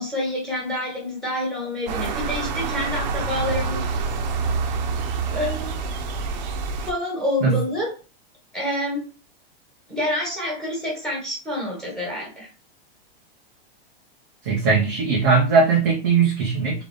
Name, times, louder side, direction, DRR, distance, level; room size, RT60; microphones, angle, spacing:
voice 1, 0.0-3.8 5.2-5.7 6.8-7.9 8.5-9.0 9.9-12.5, left 1 dB, ahead, -3 dB, 1.4 m, -27 dB
sound 1, 1.9-6.9, right 4 dB, 45° right, 0.7 m, -27 dB
voice 2, 14.4-16.9, right 5 dB, 15° right, -3 dB, 0.3 m, -19 dB
3.8 x 3.7 x 3.5 m, 0.34 s
supercardioid pair, 175°, 31 cm